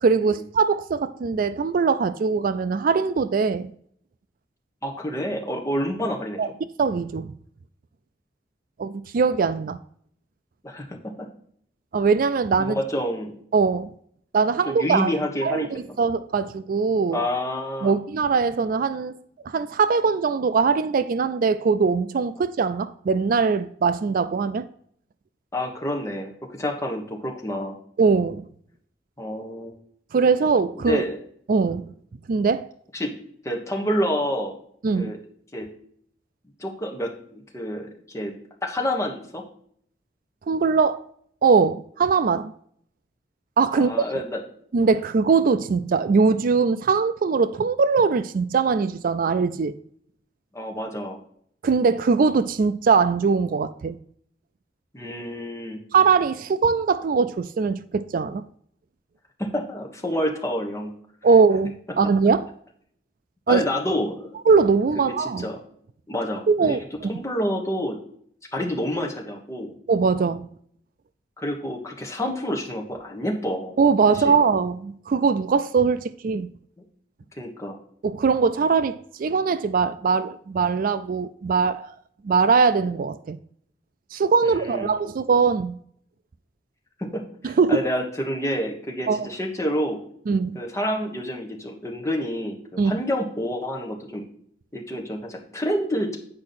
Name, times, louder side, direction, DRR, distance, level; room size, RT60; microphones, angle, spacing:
voice 1, 0.0-3.7 6.4-6.5 6.8-7.3 8.8-9.8 11.9-12.8 13.5-13.9 14.3-15.1 15.4-17.2 17.8-19.2 19.4-24.7 28.0-28.4 30.1-31.0 31.5-31.9 32.3-32.7 34.8-35.1 40.5-41.0 41.4-42.5 43.6-44.0 44.7-49.8 51.6-54.0 55.9-58.4 61.2-62.5 63.5-63.6 64.5-65.5 66.5-67.1 69.9-70.5 73.8-76.5 78.0-81.9 82.2-83.4 84.1-85.8 87.4-87.8 89.1-89.3 90.3-90.6 92.8-92.9, right 5 dB, 50° right, 0.4 m, -21 dB
voice 2, 4.8-6.4 10.6-11.3 12.6-13.3 14.6-15.7 17.1-17.9 25.5-27.8 29.2-29.7 30.9-31.2 32.9-33.1 33.4-34.6 34.9-35.2 35.5-35.7 36.6-38.3 38.6-39.4 43.7-44.4 50.5-51.2 54.9-55.8 59.4-60.9 62.0-62.1 63.5-64.3 64.9-65.6 66.1-66.8 67.1-68.0 68.5-69.8 71.4-73.7 74.1-74.4 77.4-77.8 84.4-84.9 87.0-90.0 90.5-94.2 94.7-96.2, equal, 15° left, 1.4 m, -28 dB
8.6 x 4.8 x 4.1 m
head